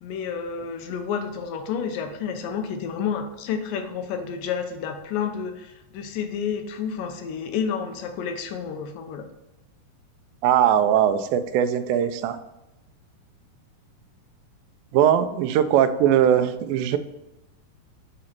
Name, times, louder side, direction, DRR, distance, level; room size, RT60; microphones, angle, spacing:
voice 1, 0.0-9.3, left 7 dB, 80° left, 7 dB, 2.4 m, -30 dB
voice 2, 10.4-12.4 14.9-17.0, right 9 dB, 90° right, 10 dB, 2.3 m, -20 dB
7.5 x 3.8 x 5.8 m, 0.94 s
omnidirectional pair, 4.0 m